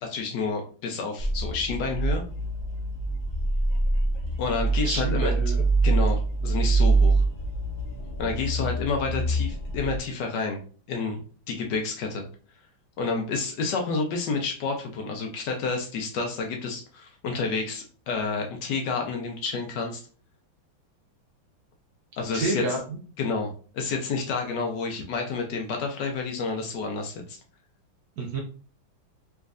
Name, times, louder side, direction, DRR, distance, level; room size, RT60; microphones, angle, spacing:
voice 1, 0.0-2.2 4.4-5.3 5.8-7.2 8.2-10.6 10.9-11.2 11.5-12.3 13.0-20.0 22.2-22.6 23.2-27.4, left 4 dB, 70° left, 3 dB, 1.1 m, -29 dB
sound 1, 1.2-10.0, right 3 dB, 30° left, 1.1 m, -25 dB
voice 2, 4.8-5.6 22.3-22.8 28.2-28.4, right 2 dB, 65° right, 0 dB, 1.0 m, -28 dB
3.5 x 3.0 x 2.4 m, 0.41 s
omnidirectional pair, 2.1 m